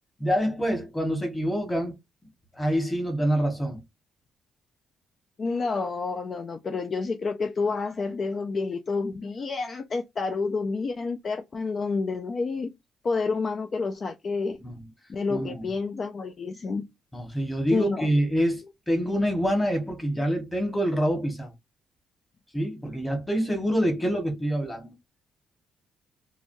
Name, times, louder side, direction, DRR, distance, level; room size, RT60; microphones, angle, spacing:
voice 1, 0.2-2.0 2.5-3.8 14.6-14.7 15.3-15.7 17.1-21.5 22.5-24.9, equal, 15° left, 1.3 m, -26 dB
voice 2, 5.4-12.7 13.0-14.6 15.1-16.9 17.7-18.1, left 4 dB, 45° left, 0.4 m, -29 dB
3.2 x 2.3 x 2.6 m
cardioid pair, 90°, 0 cm